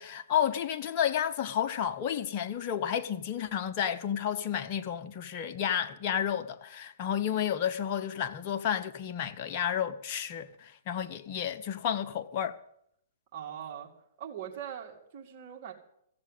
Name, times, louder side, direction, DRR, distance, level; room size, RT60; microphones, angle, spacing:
voice 1, 0.0-12.6, left 9 dB, 40° left, 0.8 m, -31 dB
voice 2, 13.3-13.9 14.2-15.7, right 9 dB, 40° right, 2.4 m, -41 dB
15.0 x 7.4 x 8.3 m
figure-of-eight pair, 120°, 0 cm